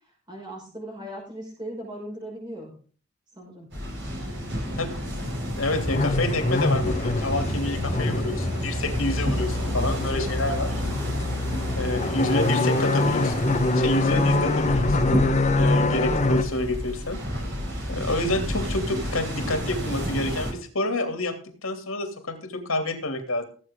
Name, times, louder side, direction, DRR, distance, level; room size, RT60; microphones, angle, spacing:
voice 1, 0.3-2.7 3.4-3.7 4.2-4.8, right 1 dB, 20° right, -2 dB, 5.9 m, -38 dB
sound 1, 3.7-20.5, equal, 55° right, 5.8 m, -31 dB
voice 2, 5.6-10.7 11.7-13.5 13.7-15.1 15.5-17.2 17.9-21.4 21.6-23.4, left 2 dB, 85° left, 6 dB, 2.8 m, -28 dB
sound 2, 5.7-16.4, left 2 dB, 35° left, 1.1 m, -25 dB
18.0 x 8.2 x 3.7 m, 0.41 s
head